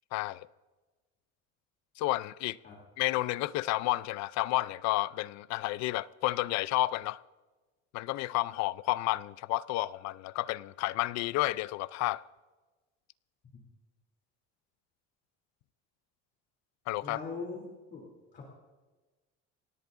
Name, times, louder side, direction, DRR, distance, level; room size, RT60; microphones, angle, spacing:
voice 1, 0.1-0.5 2.0-2.6 3.0-7.2 7.9-12.2 16.9-17.2, left 18 dB, 65° left, 0.5 m, -31 dB
voice 2, 17.0-18.1 18.3-18.5, left 4 dB, 35° left, 3.0 m, -41 dB
29.5 x 18.0 x 2.6 m
cardioid pair, 175°, 30 cm